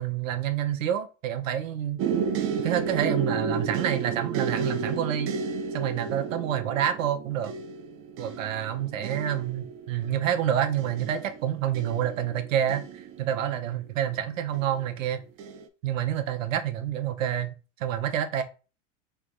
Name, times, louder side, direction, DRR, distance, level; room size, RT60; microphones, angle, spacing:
voice 1, 0.0-2.0 2.6-5.3 5.7-7.5 8.2-15.2 15.8-18.4, right 10 dB, 80° right, 0.8 m, -28 dB
sound 1, 2.0-13.9 14.5-15.0 15.4-15.6, right 5 dB, 35° right, 0.6 m, -32 dB
3.4 x 3.0 x 3.7 m
hypercardioid pair, 105°, 38 cm